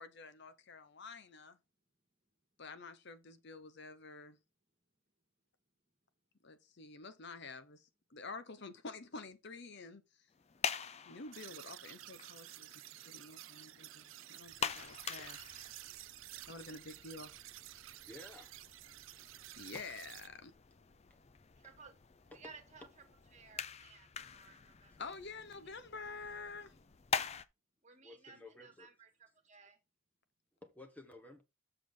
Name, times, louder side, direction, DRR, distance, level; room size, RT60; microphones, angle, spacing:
voice 1, 0.0-1.6 2.6-4.4 6.4-7.8 8.1-10.0 11.1-12.7 13.1-15.5 16.5-17.3 19.6-20.5 25.0-26.7, left 4 dB, 55° left, 0.8 m, -49 dB
sound 1, 10.3-27.4, left 6 dB, 30° left, 0.5 m, -45 dB
sound 2, 11.3-20.3, right 16 dB, 70° right, 0.4 m, -52 dB
voice 2, 18.1-18.5 22.3-22.4 28.0-28.9 30.6-31.4, left 2 dB, 10° left, 1.2 m, -54 dB
voice 3, 21.6-21.9 22.3-23.0 23.3-25.2 25.6-25.8 26.1-26.5 27.8-29.8, right 4 dB, 35° right, 1.8 m, -58 dB
7.4 x 6.8 x 3.8 m
head